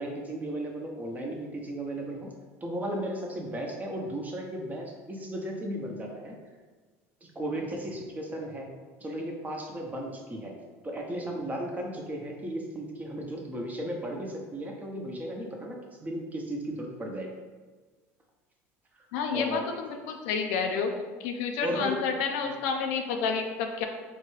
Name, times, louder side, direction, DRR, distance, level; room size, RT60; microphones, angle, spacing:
voice 1, 0.0-2.3 2.6-6.4 7.2-8.7 9.0-10.5 10.8-17.3 18.9-19.0 19.3-19.7 21.6-22.0 22.4-22.5, right 1 dB, 20° right, 0 dB, 0.8 m, -35 dB
voice 2, 19.1-20.9 21.2-23.8, left 5 dB, 75° left, 4 dB, 0.4 m, -30 dB
3.8 x 2.2 x 3.2 m, 1.4 s
supercardioid pair, 85°, 7 cm